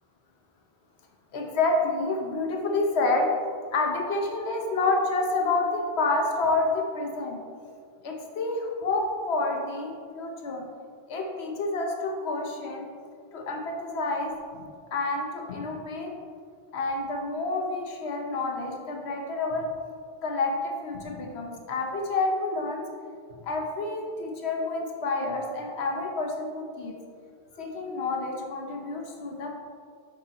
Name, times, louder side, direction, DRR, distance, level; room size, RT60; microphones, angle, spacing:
voice 1, 1.3-3.3 3.7-7.4 8.0-10.6 11.1-12.9 13.3-14.6 14.9-16.1 16.7-19.7 20.2-22.9 23.4-26.9 27.5-29.6, left 3 dB, 85° left, 2 dB, 1.1 m, -29 dB
6.2 x 5.3 x 4.1 m, 2.2 s
omnidirectional pair, 1.1 m